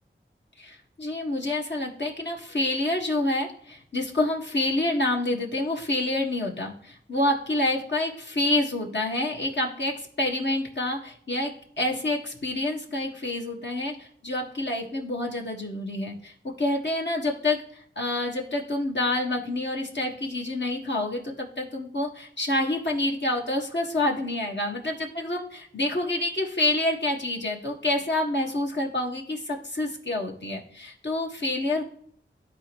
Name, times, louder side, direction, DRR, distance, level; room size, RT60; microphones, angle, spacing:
voice 1, 0.6-31.8, left 2 dB, 60° left, -1 dB, 1.7 m, -28 dB
12.5 x 4.2 x 3.1 m, 0.63 s
wide cardioid pair, 45°, 21 cm